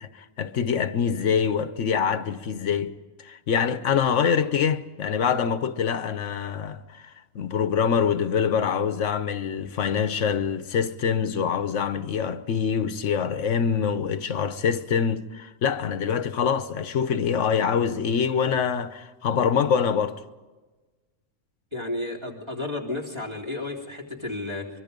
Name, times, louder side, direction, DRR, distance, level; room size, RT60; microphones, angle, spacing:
voice 1, 0.0-2.9 3.2-7.1 7.3-20.2, left 7 dB, 80° left, 1.2 m, -25 dB
voice 2, 21.7-24.7, left 2 dB, 20° right, 3.3 m, -32 dB
24.0 x 23.5 x 5.2 m
omnidirectional pair, 1.2 m